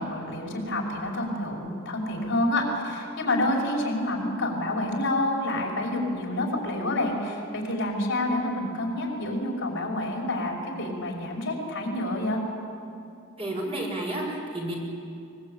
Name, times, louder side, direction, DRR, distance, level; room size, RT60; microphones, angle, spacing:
voice 1, 0.0-12.4, left 1 dB, 60° left, -1 dB, 5.6 m, -28 dB
voice 2, 13.4-14.7, right 1 dB, 30° right, -1 dB, 6.0 m, -31 dB
24.0 x 22.0 x 8.9 m, 2.6 s
head